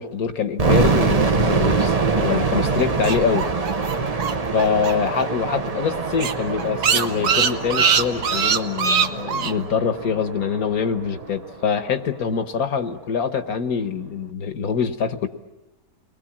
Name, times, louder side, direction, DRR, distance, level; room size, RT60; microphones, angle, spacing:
voice 1, 0.0-3.5 4.5-15.3, left 6 dB, 70° left, 9 dB, 1.7 m, -24 dB
sound 1, 0.6-11.5, right 4 dB, 30° right, 0.8 m, -24 dB
sound 2, 2.8-5.2 5.5-5.6 5.9-6.0 6.2-9.5, right 6 dB, 80° right, 1.6 m, -21 dB
30.0 x 21.5 x 7.4 m, 0.98 s
omnidirectional pair, 1.7 m